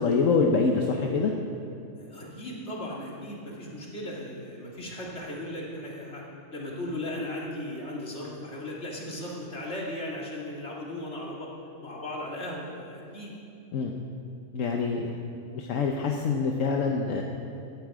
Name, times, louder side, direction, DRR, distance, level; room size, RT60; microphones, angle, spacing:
voice 1, 0.0-1.3 13.7-13.9 14.5-15.1 15.4-17.2, left 4 dB, 80° left, 2 dB, 1.3 m, -25 dB
voice 2, 1.9-6.2 6.5-11.5 11.8-13.3, left 1 dB, 60° left, -4 dB, 2.9 m, -37 dB
17.0 x 11.5 x 4.9 m, 2.6 s
omnidirectional pair, 1.3 m